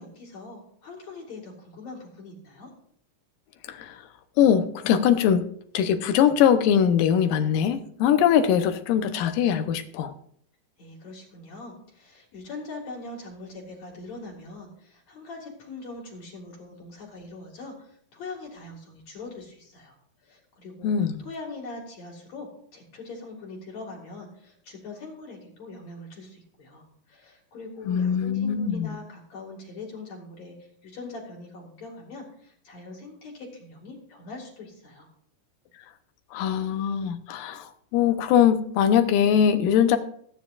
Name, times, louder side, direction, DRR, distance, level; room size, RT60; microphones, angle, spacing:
voice 1, 0.0-2.7 10.8-20.0 20.2-20.9 21.2-35.1, left 3 dB, 55° left, -1 dB, 3.1 m, -42 dB
voice 2, 3.7-4.0 4.4-5.5 5.7-10.1 20.8-21.2 27.9-29.0 36.3-40.0, left 8 dB, 80° left, 9 dB, 2.5 m, -22 dB
20.0 x 9.2 x 2.5 m, 0.64 s
omnidirectional pair, 3.9 m